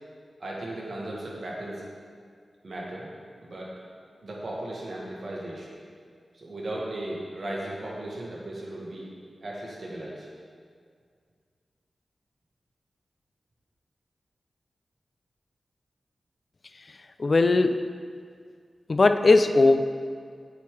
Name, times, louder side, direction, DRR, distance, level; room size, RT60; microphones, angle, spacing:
voice 1, 0.4-1.8 2.6-3.1 3.4-3.7 4.2-5.7 6.3-9.1 9.4-10.3, right 1 dB, 60° right, -4 dB, 1.7 m, -36 dB
voice 2, 17.2-17.8 18.9-19.8, left 3 dB, 55° left, 9 dB, 0.3 m, -19 dB
8.5 x 3.8 x 4.8 m, 2.1 s
cardioid pair, 60°, 0 cm